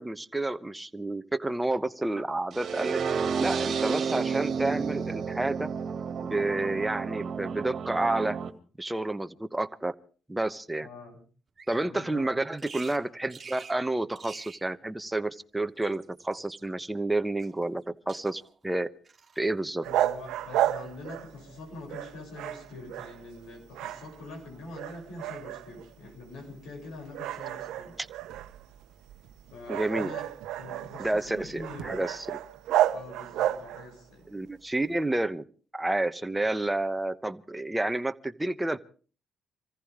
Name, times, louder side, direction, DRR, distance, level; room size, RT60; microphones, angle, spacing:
voice 1, 0.0-3.0 3.4-5.7 6.3-8.4 8.8-9.9 10.3-10.9 11.7-18.9 19.4-19.8 28.0-28.1 29.7-30.1 31.0-32.4 34.3-35.4 35.7-38.8, right 2 dB, 10° right, 10 dB, 1.0 m, -30 dB
sound 1, 2.5-8.5, right 6 dB, 55° right, 2.0 m, -31 dB
voice 2, 10.8-11.2 11.8-12.3 19.8-28.0 29.5-30.3 30.6-32.0 32.9-34.3, left 3 dB, 85° left, 2 dB, 7.3 m, -44 dB
Bird vocalization bird call bird song, 11.6-11.9 12.6-13.0 13.3-13.8 14.1-14.6 15.6-16.6 17.4-17.8 18.1-18.6 19.0-19.4, right 5 dB, 35° right, 2.2 m, -48 dB
sound 2, 19.8-21.6 21.9-23.5 23.7-24.4 24.7-25.9 26.4-26.6 27.1-34.0, right 12 dB, 90° right, 0.8 m, -32 dB
25.5 x 15.0 x 3.7 m, 0.39 s
cardioid pair, 90°, 0 cm